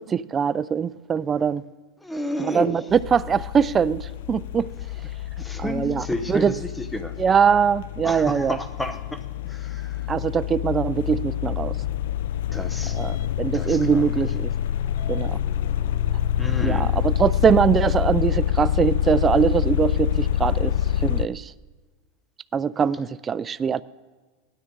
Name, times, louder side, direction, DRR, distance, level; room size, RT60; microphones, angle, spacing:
voice 1, 0.0-1.6 2.4-2.8 3.1-4.7 5.6-6.5 7.2-8.6 10.1-11.7 13.0-14.5 15.1-15.4 16.6-20.7 21.0-21.5 22.5-23.8, right 7 dB, 20° right, 0.3 m, -22 dB
voice 2, 2.0-3.0 5.4-7.2 8.0-10.1 12.5-13.0 13.5-14.1 16.4-17.0, left 1 dB, 5° left, 0.8 m, -31 dB
sound 1, 2.9-21.3, left 10 dB, 75° left, 0.3 m, -26 dB
17.5 x 12.5 x 3.8 m
supercardioid pair, 155°, 0 cm